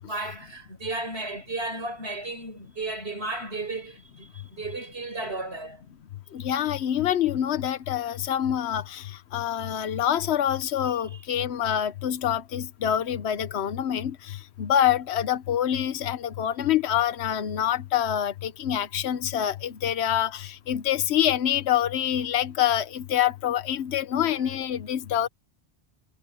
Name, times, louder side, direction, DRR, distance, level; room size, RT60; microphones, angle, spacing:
voice 1, 0.0-5.8 10.9-11.2 24.2-24.4, right 2 dB, 75° right, 5.6 m, -34 dB
voice 2, 6.3-25.3, left 10 dB, 80° left, 1.1 m, -26 dB
omnidirectional pair, 1.1 m